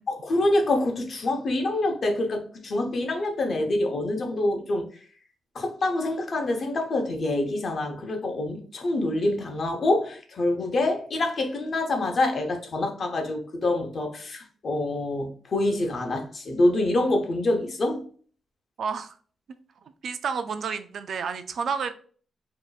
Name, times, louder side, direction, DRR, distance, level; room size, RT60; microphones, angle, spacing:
voice 1, 0.1-4.8 5.5-18.0, left 2 dB, 45° left, 1.0 m, -26 dB
voice 2, 18.8-19.2 20.0-21.9, right 6 dB, 60° right, 0.4 m, -30 dB
5.1 x 2.9 x 2.4 m
wide cardioid pair, 130°, 0 cm